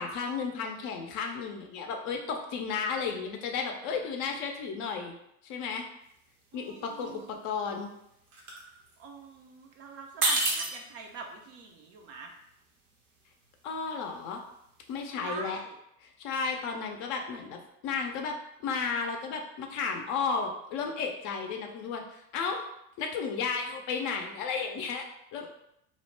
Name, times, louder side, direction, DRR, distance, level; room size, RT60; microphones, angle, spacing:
voice 1, 0.0-5.1 5.4-5.8 6.5-7.9 13.6-14.4 14.9-15.6 16.0-18.3 18.6-22.0 22.3-22.6 23.0-25.0 25.3-25.5, left 5 dB, 45° left, 2 dB, 0.5 m, -33 dB
sound 1, 6.0-6.3 6.5-7.2 7.5-9.7 10.1-15.0, right 2 dB, 75° right, 0.9 m, -33 dB
voice 2, 6.5-7.4 9.0-12.3 15.2-15.8, right 4 dB, 35° right, 2 dB, 0.4 m, -44 dB
2.5 x 2.0 x 3.1 m, 0.78 s
figure-of-eight pair, 75°, 44 cm